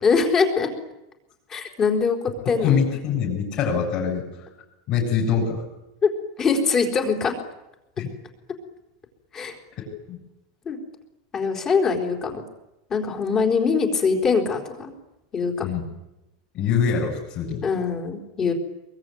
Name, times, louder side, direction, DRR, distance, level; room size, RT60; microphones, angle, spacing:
voice 1, 0.0-0.7 1.5-2.8 6.0-6.1 6.4-7.4 9.3-9.6 10.7-10.8 11.3-12.4 12.9-14.9 15.3-15.5 17.6-18.5, left 5 dB, 20° left, 3 dB, 4.2 m, -22 dB
voice 2, 2.4-4.3 4.9-5.6 8.0-8.1 9.8-10.2 15.6-15.9 16.5-17.6, left 7 dB, 35° left, -3 dB, 7.6 m, -24 dB
24.0 x 23.0 x 9.4 m, 0.94 s
supercardioid pair, 165°, 2 cm